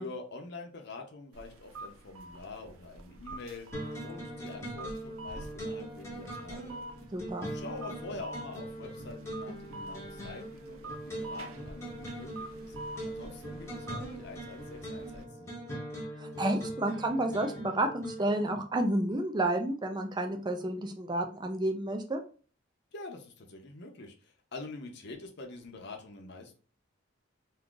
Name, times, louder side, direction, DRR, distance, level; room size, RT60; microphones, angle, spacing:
voice 1, 0.0-6.8 7.5-15.6 22.9-26.5, left 3 dB, 55° left, 3 dB, 0.6 m, -46 dB
sound 1, 1.3-15.2, right 2 dB, 85° right, 0.4 m, -47 dB
sound 2, 3.7-18.5, right 1 dB, 15° left, 0.8 m, -41 dB
voice 2, 7.1-7.5 16.2-22.2, right 1 dB, 20° right, 5 dB, 0.4 m, -30 dB
2.6 x 2.4 x 3.7 m, 0.39 s
head